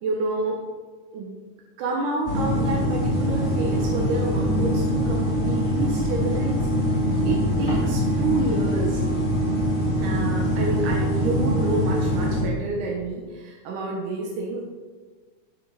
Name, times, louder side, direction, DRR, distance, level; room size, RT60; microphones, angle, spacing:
voice 1, 0.0-0.6 1.1-1.3 1.8-7.0 7.2-9.0 10.0-14.6, right 2 dB, 85° right, -1 dB, 2.7 m, -29 dB
sound 1, 2.3-12.4, equal, 20° left, 3.2 m, -23 dB
13.0 x 8.1 x 4.1 m, 1.4 s
omnidirectional pair, 3.5 m